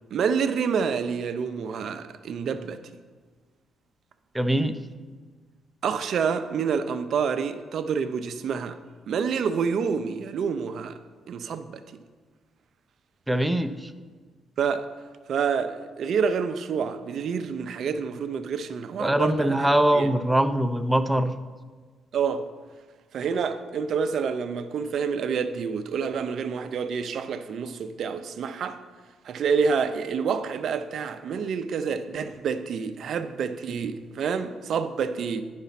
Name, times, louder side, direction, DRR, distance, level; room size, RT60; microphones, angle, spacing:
voice 1, 0.1-2.8 5.8-8.8 9.1-10.9 11.3-11.8 14.6-14.9 15.3-19.7 19.9-20.1 22.1-22.5 23.1-28.8 29.2-35.4, right 6 dB, 65° right, 0.5 m, -28 dB
voice 2, 4.3-4.8 13.3-13.9 19.0-21.4, right 1 dB, 5° right, 0.5 m, -22 dB
9.6 x 4.1 x 5.7 m
cardioid pair, 90°, 0 cm